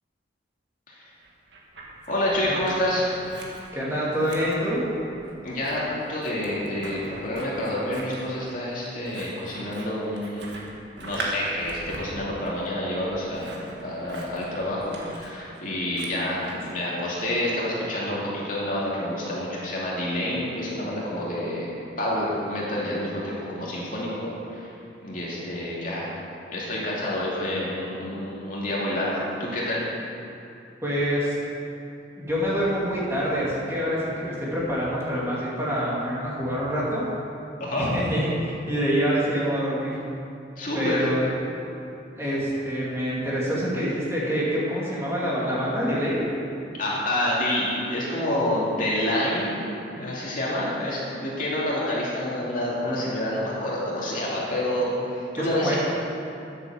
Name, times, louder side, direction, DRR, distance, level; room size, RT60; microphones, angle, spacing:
Scissors, 1.2-2.8 3.1-16.7, right 2 dB, 70° right, 1.8 m, -40 dB
voice 1, 2.1-3.1 5.4-10.4 11.0-21.7 22.0-24.7 25.0-26.0 26.5-29.9 37.6-37.9 40.6-41.1 46.8-55.8, left 1 dB, 45° left, -6 dB, 2.6 m, -28 dB
voice 2, 3.7-4.8 30.8-31.3 32.2-37.1 37.8-40.0 40.7-41.2 42.2-46.2 55.4-55.8, equal, 15° right, -7 dB, 2.3 m, -26 dB
10.0 x 7.9 x 7.2 m, 2.6 s
head